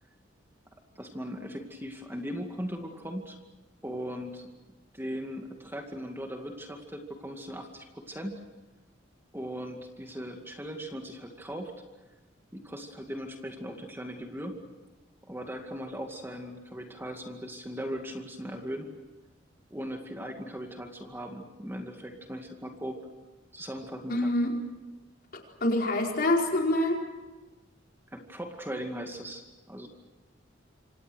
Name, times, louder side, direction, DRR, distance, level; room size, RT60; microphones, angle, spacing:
voice 1, 1.0-3.4 3.8-4.4 4.9-8.4 9.3-11.7 12.5-14.6 15.3-18.9 19.7-23.0 23.5-24.3 28.1-29.9, equal, 10° right, 3 dB, 2.2 m, -38 dB
voice 2, 24.1-24.5 25.6-27.0, left 1 dB, 50° left, 0 dB, 4.9 m, -25 dB
27.0 x 26.5 x 6.4 m, 1.2 s
head